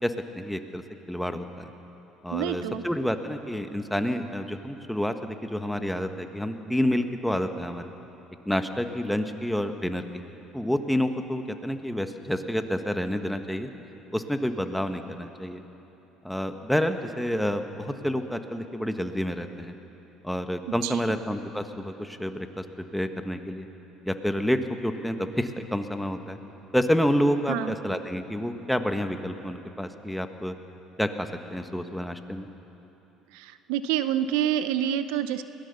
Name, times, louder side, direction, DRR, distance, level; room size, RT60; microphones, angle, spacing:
voice 1, 0.0-1.7 2.2-7.9 8.4-10.2 10.5-13.7 14.1-15.6 16.2-19.7 20.2-22.6 22.9-23.7 24.0-26.4 26.7-30.5 31.0-32.5, equal, 5° left, 7 dB, 1.5 m, -29 dB
voice 2, 2.3-2.8 20.8-21.2 27.5-27.8 33.3-35.4, right 11 dB, 80° right, 12 dB, 0.7 m, -27 dB
21.5 x 17.5 x 7.0 m, 3.0 s
hypercardioid pair, 70°, 0 cm